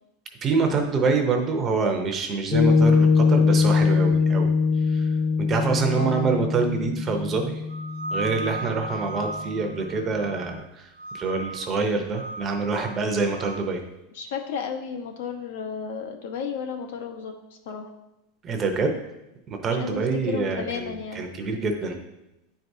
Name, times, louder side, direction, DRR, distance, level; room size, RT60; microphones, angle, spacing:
voice 1, 0.4-4.5 4.9-5.0 5.4-7.6 8.1-10.9 11.1-13.8 18.4-18.9 19.5-22.0, right 4 dB, 20° right, 4 dB, 0.7 m, -26 dB
Piano, 2.5-9.2, left 4 dB, 25° left, 0.8 m, -22 dB
voice 2, 5.9-6.4 14.1-17.3 17.7-17.9 19.7-21.2, left 6 dB, 70° left, 4 dB, 0.9 m, -33 dB
sound 1, 7.7-10.6 11.0-11.7 12.1-13.6, right 1 dB, 85° right, 0.7 m, -36 dB
9.5 x 4.6 x 2.7 m, 0.94 s
supercardioid pair, 170°, 0 cm